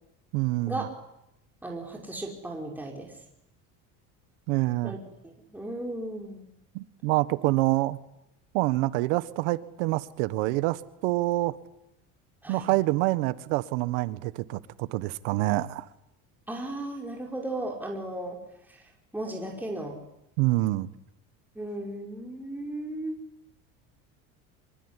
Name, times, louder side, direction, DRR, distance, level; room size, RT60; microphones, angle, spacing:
voice 1, 0.3-0.9 4.5-5.0 6.7-8.0 8.5-11.5 12.5-15.9 20.4-20.9, right 19 dB, 90° right, 15 dB, 1.5 m, -26 dB
voice 2, 1.6-3.2 4.8-5.0 5.2-6.4 12.4-12.7 16.5-18.4 18.7-18.8 19.1-20.0 21.6-23.2, right 1 dB, 5° right, 0 dB, 5.5 m, -35 dB
25.0 x 24.0 x 10.0 m, 0.82 s
supercardioid pair, 105°, 34 cm